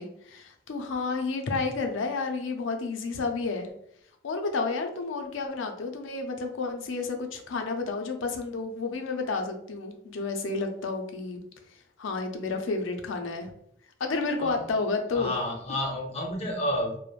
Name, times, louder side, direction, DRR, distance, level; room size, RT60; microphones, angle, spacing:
voice 1, 0.0-3.7 4.2-11.4 12.0-13.5 14.0-15.3, left 3 dB, 90° left, 5 dB, 0.4 m, -31 dB
voice 2, 15.1-17.0, left 1 dB, 35° left, 1 dB, 0.6 m, -30 dB
3.0 x 2.0 x 2.4 m, 0.73 s
head